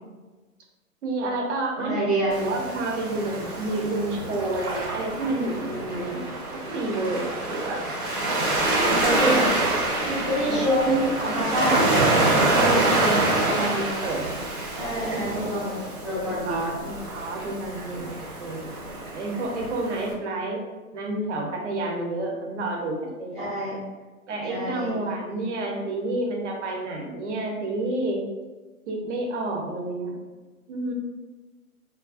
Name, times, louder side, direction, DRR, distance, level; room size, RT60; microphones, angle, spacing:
voice 1, 1.0-2.0 2.4-7.9 8.8-9.5 10.4-11.1 11.6-12.1 12.5-14.3 15.1-15.4 16.5-18.7 19.1-20.6 20.9-23.4 24.3-28.2 28.9-30.2 30.7-30.9, right 2 dB, 55° right, 0 dB, 0.7 m, -29 dB
voice 2, 1.8-2.4 8.9-9.5 10.0-11.9 14.7-16.7 23.4-23.8 24.5-25.0, equal, ahead, -11 dB, 0.6 m, -27 dB
Waves surf, 2.3-20.1, right 2 dB, 90° right, 0.9 m, -26 dB
2.4 x 2.2 x 2.4 m, 1.2 s
figure-of-eight pair, 120°, 43 cm